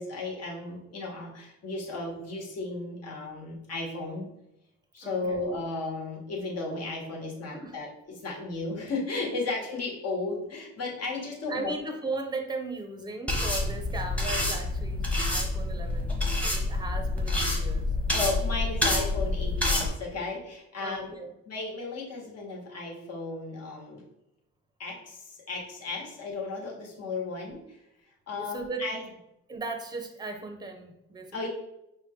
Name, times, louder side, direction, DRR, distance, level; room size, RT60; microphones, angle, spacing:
voice 1, 0.0-4.3 4.9-11.8 18.1-21.1 21.5-24.0 24.8-27.6 28.3-29.0 31.3-31.5, left 3 dB, 55° left, -1 dB, 1.3 m, -34 dB
voice 2, 5.0-5.4 7.5-7.8 11.5-16.2 16.4-17.9 20.8-21.3 28.3-28.9 29.5-31.5, right 3 dB, 15° right, 5 dB, 0.7 m, -37 dB
sound 1, 13.3-19.9, left 2 dB, 5° left, 1.0 m, -28 dB
5.2 x 2.2 x 3.6 m, 0.86 s
cardioid pair, 90°, 30 cm